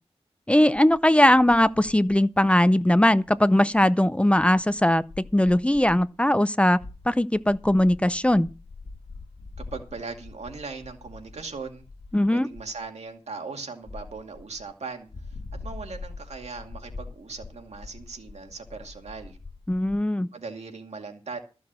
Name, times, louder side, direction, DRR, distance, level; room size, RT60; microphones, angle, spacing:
voice 1, 0.5-6.8 7.1-8.5 12.1-12.5 19.7-20.3, left 1 dB, 10° left, 0.5 m, -20 dB
sound 1, 0.7-1.0 1.3-3.5 3.7-3.8 4.4-6.2 6.7-12.3 12.5-12.9 13.8-14.7 15.1-20.0, left 3 dB, 75° left, 1.5 m, -44 dB
voice 2, 9.7-11.8 12.3-15.1 15.6-19.4 20.3-21.4, right 4 dB, 90° right, 2.3 m, -38 dB
14.0 x 6.2 x 7.5 m
wide cardioid pair, 85°, 11 cm